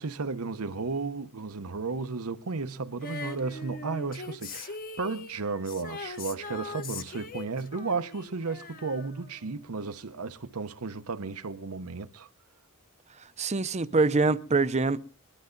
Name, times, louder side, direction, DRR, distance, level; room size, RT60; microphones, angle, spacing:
voice 1, 0.0-12.3, right 4 dB, 75° right, 0.9 m, -34 dB
Female singing, 3.0-9.6 9.9-10.0, left 3 dB, 40° left, 1.2 m, -41 dB
voice 2, 13.4-15.0, right 3 dB, 30° right, 0.7 m, -24 dB
20.5 x 12.0 x 3.9 m
head